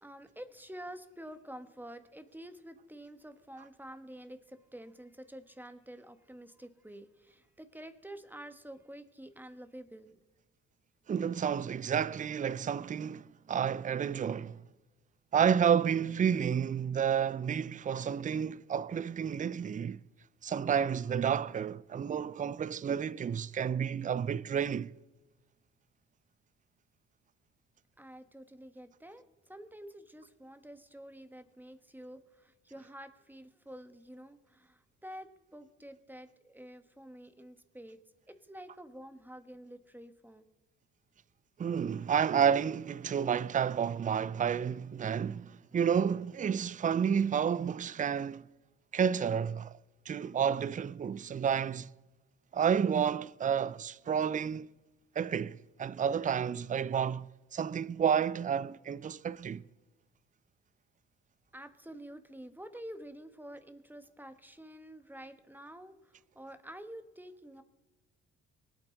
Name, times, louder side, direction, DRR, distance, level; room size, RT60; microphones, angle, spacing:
voice 1, 0.0-10.2 28.0-38.0 38.3-40.5 61.5-67.6, right 1 dB, 5° right, 1.5 m, -49 dB
voice 2, 11.1-14.6 15.3-20.0 20.4-24.9 41.6-48.5 48.9-49.7 50.1-51.9 52.5-54.7 55.2-59.6, right 7 dB, 25° right, 0.5 m, -30 dB
23.0 x 8.8 x 4.0 m
hypercardioid pair, 50°, 33 cm